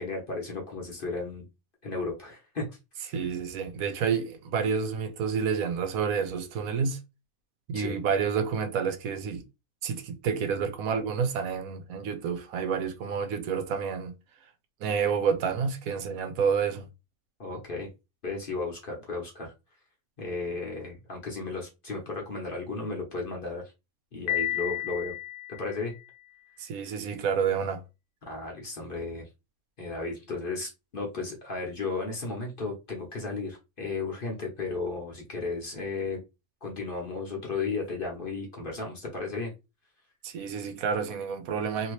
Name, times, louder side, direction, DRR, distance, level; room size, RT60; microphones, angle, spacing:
voice 1, 0.0-1.5 1.8-2.7 3.0-3.3 7.7-8.0 17.4-17.9 18.2-19.5 20.2-23.6 24.1-25.1 25.5-25.9 26.8-27.0 28.2-29.3 29.8-36.2 36.6-39.5, left 3 dB, 45° left, 0.9 m, -34 dB
voice 2, 3.1-7.0 7.7-9.4 9.8-14.1 14.8-16.9 26.6-27.8 40.2-41.9, right 6 dB, 75° right, 1.0 m, -29 dB
Piano, 24.3-26.2, left 14 dB, 90° left, 1.1 m, -32 dB
2.8 x 2.8 x 3.0 m
omnidirectional pair, 1.5 m